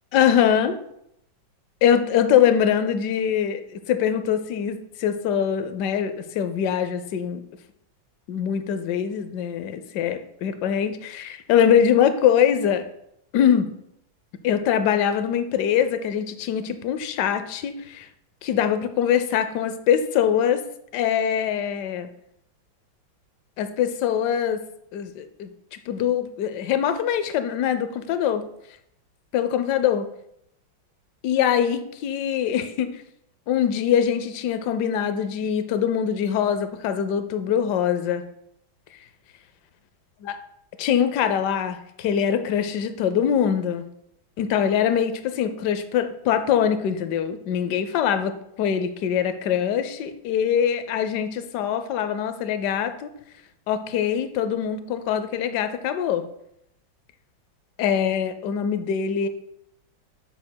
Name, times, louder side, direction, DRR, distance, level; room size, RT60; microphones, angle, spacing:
voice 1, 0.1-0.8 1.8-7.4 8.3-12.9 13.3-13.7 14.4-18.1 18.4-20.6 20.9-22.1 23.6-24.6 24.9-28.4 29.3-30.1 31.2-33.0 33.5-38.2 40.2-40.4 40.8-43.8 44.4-53.1 53.7-56.2 57.8-59.3, left 8 dB, 70° left, 10 dB, 1.0 m, -23 dB
8.2 x 6.9 x 2.2 m, 0.76 s
omnidirectional pair, 2.2 m